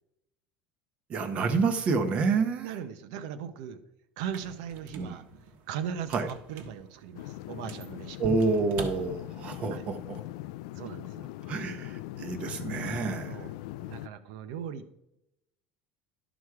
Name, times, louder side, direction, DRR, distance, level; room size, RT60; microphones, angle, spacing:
voice 1, 1.1-2.7 4.9-5.2 6.1-6.3 8.2-10.2 11.4-13.4, right 4 dB, 30° right, 8 dB, 1.0 m, -28 dB
voice 2, 2.6-3.8 4.2-5.2 5.7-8.2 9.7-9.8 10.8-11.3 13.3-13.5 13.8-14.9, right 8 dB, 75° right, 11 dB, 0.8 m, -38 dB
sound 1, 4.2-9.7, right 4 dB, 50° right, 1.3 m, -43 dB
sound 2, 7.1-14.1, left 16 dB, 80° left, 0.4 m, -41 dB
11.0 x 6.2 x 4.7 m, 0.84 s
cardioid pair, 170°, 4 cm